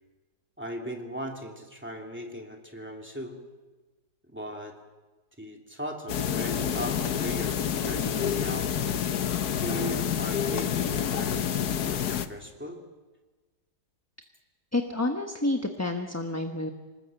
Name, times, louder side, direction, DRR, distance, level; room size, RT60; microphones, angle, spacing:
voice 1, 0.6-3.4 4.3-4.8 5.4-8.7 9.6-12.8, equal, 5° right, 1 dB, 2.8 m, -38 dB
sound 1, 6.1-12.3, left 8 dB, 70° left, 1.5 m, -28 dB
voice 2, 14.7-16.7, left 2 dB, 10° left, 4 dB, 1.0 m, -29 dB
26.0 x 20.0 x 7.8 m, 1.3 s
omnidirectional pair, 1.8 m